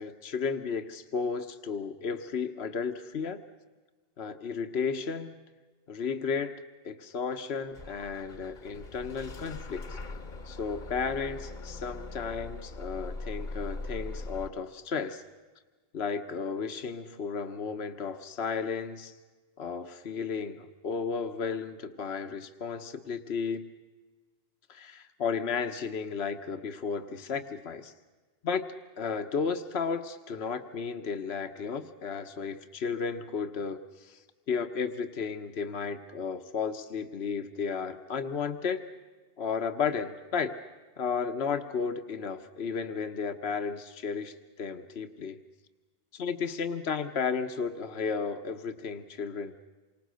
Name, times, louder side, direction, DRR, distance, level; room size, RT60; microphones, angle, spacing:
voice 1, 0.0-3.4 4.2-5.4 5.9-6.5 6.8-10.0 10.4-15.2 15.9-19.2 19.6-23.7 24.7-27.9 28.4-28.6 29.0-38.8 39.4-40.6 41.0-45.4 46.1-49.6, left 5 dB, 75° left, 8 dB, 1.3 m, -33 dB
Bus / Engine starting, 7.7-14.5, left 2 dB, 45° left, 1.2 m, -41 dB
28.0 x 26.0 x 6.4 m, 1.3 s
omnidirectional pair, 1.1 m